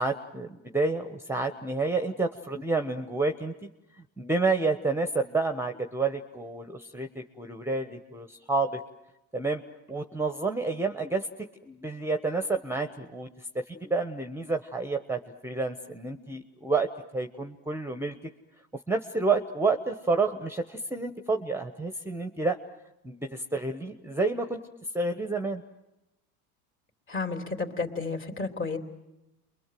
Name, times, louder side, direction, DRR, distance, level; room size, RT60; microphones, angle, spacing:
voice 1, 0.0-3.5 4.2-8.8 9.3-9.6 9.9-11.3 11.6-18.1 18.9-22.6 23.0-24.6 24.9-25.6, right 3 dB, 5° right, 7 dB, 1.2 m, -29 dB
voice 2, 27.1-28.8, left 4 dB, 30° left, 4 dB, 3.5 m, -31 dB
28.5 x 23.0 x 7.7 m, 0.94 s
supercardioid pair, 105°, 43 cm